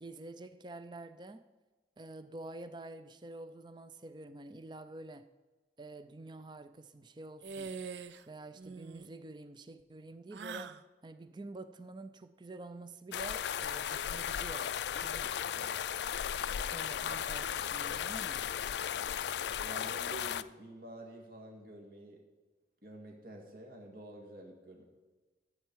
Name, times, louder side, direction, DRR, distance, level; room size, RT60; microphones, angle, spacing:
voice 1, 0.0-1.4 2.0-5.3 5.8-7.8 8.3-15.9 16.6-18.4, right 2 dB, 25° right, 0.5 m, -48 dB
sound 1, 7.4-8.2 8.5-9.1 10.3-10.8, right 5 dB, 85° right, 0.5 m, -43 dB
sound 2, 13.1-20.4, left 9 dB, 75° left, 0.3 m, -36 dB
voice 2, 19.6-22.2 22.8-24.8, right 2 dB, 55° right, 2.0 m, -49 dB
14.0 x 8.2 x 4.7 m
head